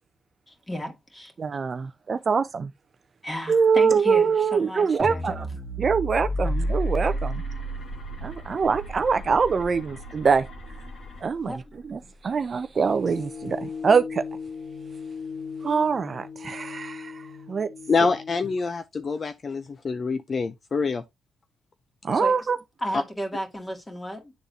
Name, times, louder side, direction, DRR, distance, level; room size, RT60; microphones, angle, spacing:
voice 1, 0.5-1.3 3.2-5.5 11.4-11.6 22.2-22.4 22.8-24.3, equal, 15° left, 1.9 m, -34 dB
voice 2, 1.4-2.7 3.5-5.5 5.8-7.4 8.2-10.5 11.2-11.6 11.9-14.2 15.6-17.7 22.0-22.6, right 5 dB, 40° right, 0.5 m, -24 dB
sound 1, 5.0-11.3, right 1 dB, 20° right, 1.5 m, -32 dB
sound 2, 6.3-11.2, equal, 55° left, 1.6 m, -42 dB
sound 3, 13.0-18.6, left 5 dB, 80° left, 2.5 m, -38 dB
voice 3, 17.9-21.0 22.1-22.2, left 4 dB, 40° left, 0.5 m, -26 dB
9.3 x 3.9 x 2.7 m
cardioid pair, 90°, 0 cm